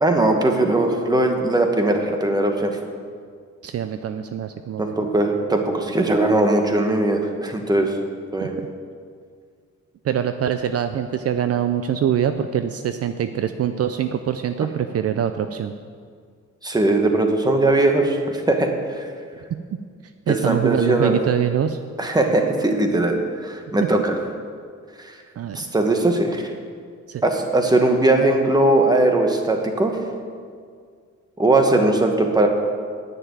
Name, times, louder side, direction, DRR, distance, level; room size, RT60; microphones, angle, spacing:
voice 1, 0.0-2.8 4.8-8.0 8.3-8.6 16.6-18.2 18.5-19.0 20.3-21.2 22.0-23.1 23.4-24.2 25.0-25.1 25.5-26.5 27.2-30.0 31.4-32.5, right 2 dB, 15° right, 3 dB, 1.2 m, -19 dB
voice 2, 3.6-5.1 8.4-8.7 10.0-15.7 20.3-21.8 25.4-25.7 27.1-27.2, right 9 dB, 55° right, 8 dB, 0.5 m, -24 dB
10.0 x 6.9 x 9.2 m, 2.1 s
wide cardioid pair, 155°, 29 cm